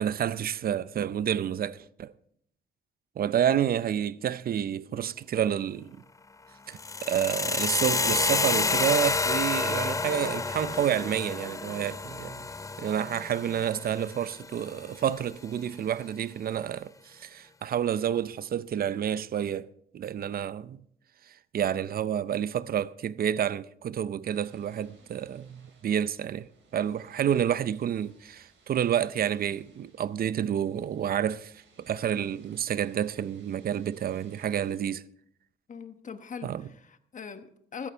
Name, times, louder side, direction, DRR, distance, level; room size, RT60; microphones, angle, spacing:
voice 1, 0.0-2.1 3.2-6.0 6.7-12.5 12.8-20.8 21.5-31.5 31.8-35.0 36.4-36.7, right 9 dB, 50° right, 0.6 m, -29 dB
sound 1, 6.7-14.8, left 3 dB, 15° left, 0.4 m, -29 dB
sound 2, 24.3-34.8, right 4 dB, 80° right, 4.3 m, -62 dB
voice 2, 35.7-37.9, left 6 dB, 40° left, 1.1 m, -41 dB
15.0 x 13.5 x 3.4 m
cardioid pair, 90°, 20 cm